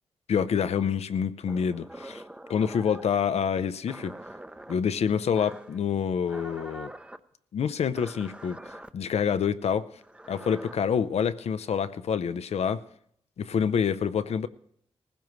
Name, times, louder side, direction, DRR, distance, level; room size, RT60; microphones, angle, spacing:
voice 1, 0.3-2.2 2.5-4.2 4.7-6.9 7.5-8.6 8.9-9.9 10.3-12.8 13.4-14.5, left 7 dB, 75° left, 0.6 m, -27 dB
sound 1, 1.5-3.2 3.9-4.7 5.4-5.8 6.3-7.2 8.0-8.9 10.0-10.7, right 1 dB, 10° right, 0.6 m, -44 dB
19.0 x 15.5 x 3.1 m
cardioid pair, 60°, 11 cm